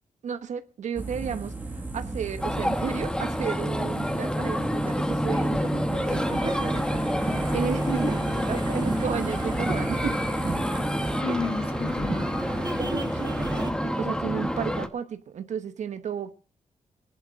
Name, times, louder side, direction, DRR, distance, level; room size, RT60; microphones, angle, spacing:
voice 1, 0.2-10.2 12.8-16.3, right 7 dB, 70° right, 1.0 m, -33 dB
sound 1, 1.0-11.2, right 2 dB, 15° right, 1.6 m, -36 dB
sound 2, 2.4-14.9, equal, 5° left, 1.0 m, -28 dB
sound 3, 6.0-13.7, right 3 dB, 35° right, 1.3 m, -35 dB
voice 2, 7.9-8.7 11.2-13.0, left 5 dB, 50° left, 1.7 m, -34 dB
20.5 x 11.0 x 3.6 m
wide cardioid pair, 125°, 13 cm